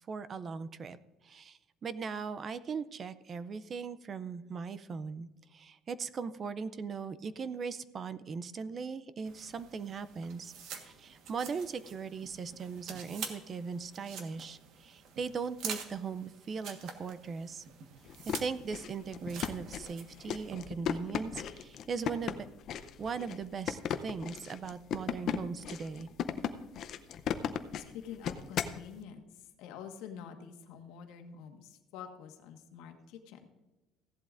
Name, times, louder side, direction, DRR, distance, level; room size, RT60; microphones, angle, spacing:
voice 1, 0.1-1.0 1.2-10.5 10.8-17.6 18.3-22.4 23.0-26.1, right 5 dB, 25° right, 15 dB, 0.4 m, -39 dB
sound 1, 9.2-20.5, right 6 dB, 55° right, 1.3 m, -47 dB
sound 2, 18.1-28.8, left 8 dB, 40° left, 0.6 m, -36 dB
voice 2, 27.7-33.5, left 8 dB, 75° left, 6 dB, 1.4 m, -47 dB
16.0 x 11.5 x 2.5 m, 1.1 s
cardioid pair, 170°, 0 cm